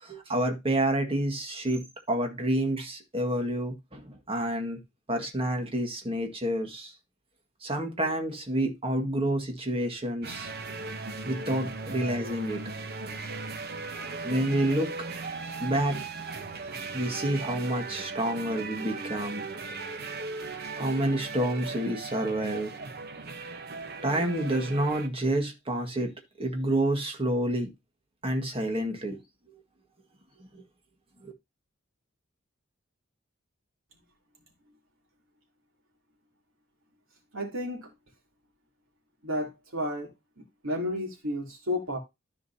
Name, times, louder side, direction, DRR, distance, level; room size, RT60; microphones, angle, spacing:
voice 1, 0.0-4.8 5.1-6.9 7.6-10.5 11.3-12.6 14.2-14.9 15.6-16.0 16.9-19.4 20.8-22.7 24.0-26.1 26.4-27.7 28.2-29.2 31.2-31.3, right 1 dB, 30° right, 1.9 m, -28 dB
sound 1, 10.2-25.1, right 4 dB, 55° right, 1.0 m, -38 dB
voice 2, 37.3-37.9 39.2-42.0, left 1 dB, 85° right, 3.2 m, -32 dB
13.5 x 5.2 x 2.8 m
head